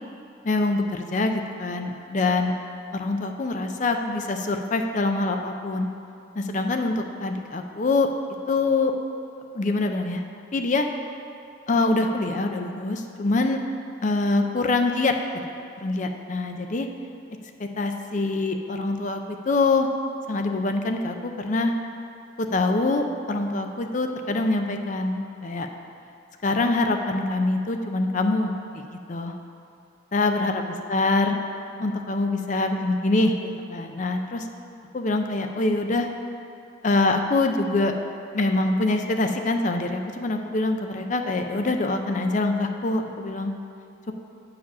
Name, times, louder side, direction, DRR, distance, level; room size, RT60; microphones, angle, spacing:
voice 1, 0.4-2.5 2.9-5.9 6.4-8.1 8.5-8.9 9.5-10.2 10.5-10.9 11.7-13.6 14.0-15.1 15.8-16.9 17.6-19.9 20.3-21.7 22.4-25.7 26.4-28.5 29.1-29.3 30.1-31.4 31.8-34.4 34.9-36.1 36.8-37.9 38.3-43.5, left 2 dB, 40° left, 5 dB, 0.5 m, -24 dB
8.6 x 4.9 x 6.1 m, 2.5 s
head